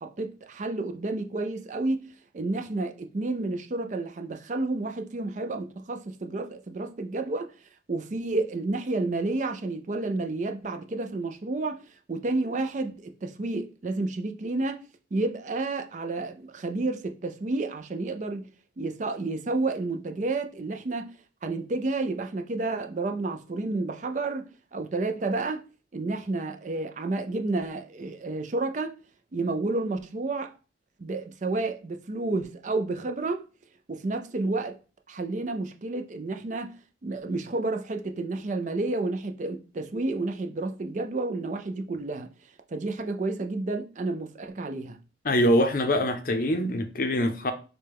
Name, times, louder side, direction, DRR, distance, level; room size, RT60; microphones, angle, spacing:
voice 1, 0.0-14.8 15.1-18.5 18.8-21.1 21.4-25.6 25.9-28.9 29.3-30.5 31.0-33.4 33.9-34.8 35.1-36.7 37.0-42.3 42.7-45.0, right 2 dB, 40° right, 0.4 m, -30 dB
voice 2, 45.2-47.5, equal, 45° left, 0.6 m, -24 dB
6.6 x 2.2 x 3.4 m
head